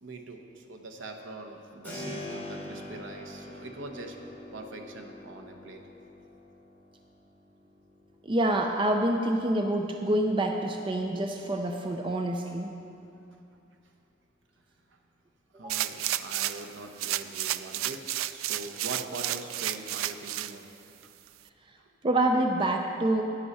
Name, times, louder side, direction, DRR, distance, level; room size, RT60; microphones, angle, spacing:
voice 1, 0.0-4.2 4.5-5.8 15.5-20.6, right 2 dB, 70° right, 4 dB, 0.9 m, -42 dB
Keyboard (musical), 1.8-12.5, left 1 dB, 10° left, 2.7 m, -46 dB
voice 2, 8.2-12.7 15.5-15.8 22.0-23.2, right 1 dB, 25° right, 3 dB, 0.5 m, -27 dB
sound 1, 15.7-16.7 17.0-20.5 21.0-21.1, right 13 dB, 90° right, 0.3 m, -32 dB
10.0 x 10.0 x 4.2 m, 2.7 s
head